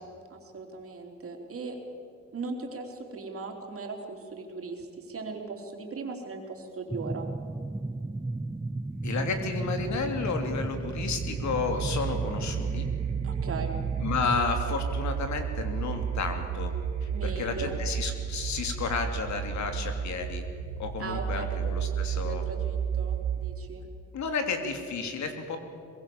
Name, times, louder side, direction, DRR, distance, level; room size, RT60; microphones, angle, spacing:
voice 1, 0.0-1.8 2.3-7.3 13.2-13.8 17.1-17.8 21.0-23.9, right 3 dB, 50° right, 2 dB, 3.9 m, -39 dB
sound 1, 6.9-14.4, right 2 dB, 10° right, 0.5 m, -34 dB
sound 2, 8.9-23.8, right 8 dB, 65° right, 1.9 m, -33 dB
voice 2, 9.0-12.9 14.0-16.7 17.0-20.4 20.8-22.4 24.1-25.6, left 4 dB, 65° left, 5 dB, 3.1 m, -32 dB
22.5 x 22.5 x 7.2 m, 2.5 s
cardioid pair, 90°, 30 cm